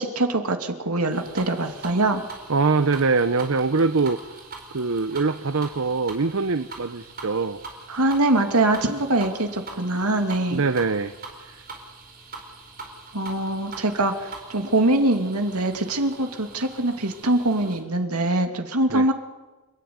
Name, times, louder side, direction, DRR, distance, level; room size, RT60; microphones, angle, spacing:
voice 1, 0.0-2.2 7.9-10.6 13.1-19.1, right 2 dB, 85° right, 5 dB, 2.7 m, -23 dB
sound 1, 1.1-17.8, right 3 dB, 40° right, 5.0 m, -42 dB
voice 2, 2.5-4.2 4.7-7.6 10.5-11.1 11.4-11.6 18.9-19.1, right 4 dB, 65° right, 11 dB, 0.8 m, -23 dB
30.0 x 14.0 x 9.6 m, 1.2 s
head